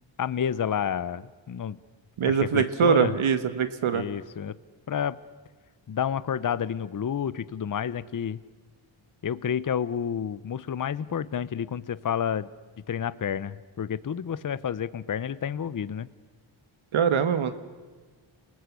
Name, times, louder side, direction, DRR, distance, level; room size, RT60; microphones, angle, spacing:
voice 1, 0.2-1.8 2.2-3.2 3.9-4.6 4.9-5.2 5.9-8.4 9.2-12.5 12.9-16.1, left 8 dB, 40° left, 18 dB, 0.8 m, -30 dB
voice 2, 2.2-4.0 16.9-17.5, right 7 dB, 80° right, 11 dB, 1.5 m, -23 dB
30.0 x 19.5 x 8.3 m, 1.4 s
wide cardioid pair, 115°, 48 cm